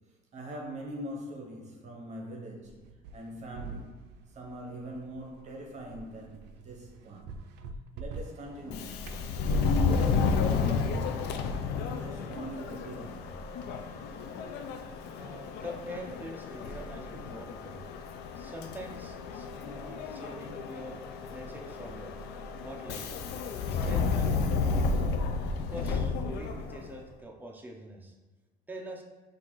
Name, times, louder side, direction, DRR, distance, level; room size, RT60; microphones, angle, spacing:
voice 1, 0.0-4.0 4.3-7.4 7.9-9.0 9.4-11.4 11.8-13.4, right 1 dB, 40° right, 0.9 m, -43 dB
sound 1, 2.7-9.3, right 3 dB, 80° right, 0.4 m, -46 dB
Subway metro underground, 8.6-27.0, left 4 dB, 75° left, 0.4 m, -32 dB
voice 2, 15.1-17.8 18.4-21.0 21.3-22.1 22.6-23.2 23.7-25.1 25.7-28.1 28.7-29.0, equal, 10° right, 0.6 m, -44 dB
5.7 x 2.6 x 3.1 m
cardioid pair, 115°, 17 cm